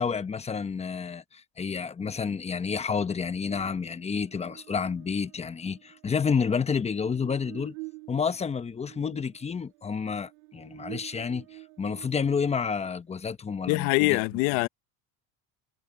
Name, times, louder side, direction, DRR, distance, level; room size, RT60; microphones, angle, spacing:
voice 1, 0.0-7.7 8.1-14.2, left 6 dB, 15° left, 0.9 m, -30 dB
Buzz, 3.5-12.9, right 25 dB, 85° right, 7.2 m, -48 dB
voice 2, 13.7-14.7, left 24 dB, 75° left, 0.8 m, -24 dB
cardioid pair, 135°, 41 cm